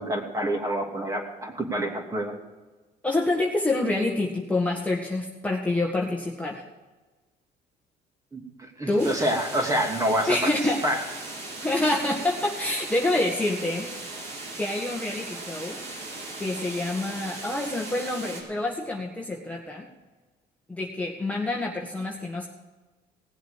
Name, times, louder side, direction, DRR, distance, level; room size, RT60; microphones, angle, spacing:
voice 1, 0.0-2.3 8.3-10.5 10.8-11.0, equal, 20° right, 2 dB, 2.8 m, -27 dB
voice 2, 3.0-6.6 8.9-9.2 10.3-10.9 11.6-13.9 14.6-15.8 16.4-19.9 20.7-22.5, left 2 dB, 10° left, -1 dB, 1.7 m, -27 dB
sound 1, 9.0-18.4, right 2 dB, 85° right, 4.2 m, -38 dB
18.0 x 7.7 x 6.6 m, 1.3 s
cardioid pair, 110°, 17 cm